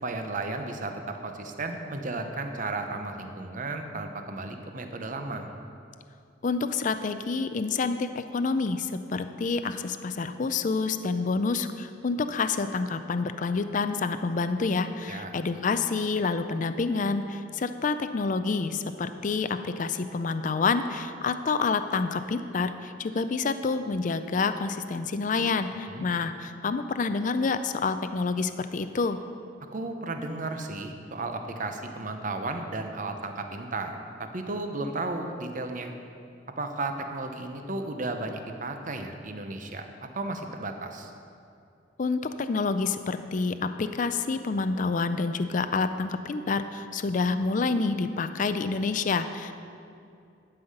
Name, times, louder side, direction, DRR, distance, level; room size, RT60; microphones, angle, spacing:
voice 1, 0.0-5.5 15.1-15.4 25.9-26.1 29.7-35.9 36.6-39.8 40.1-41.1, right 2 dB, 45° right, 5 dB, 0.8 m, -34 dB
voice 2, 6.4-29.2 42.0-49.5, left 4 dB, 40° left, 10 dB, 0.4 m, -28 dB
11.5 x 5.6 x 7.9 m, 2.5 s
head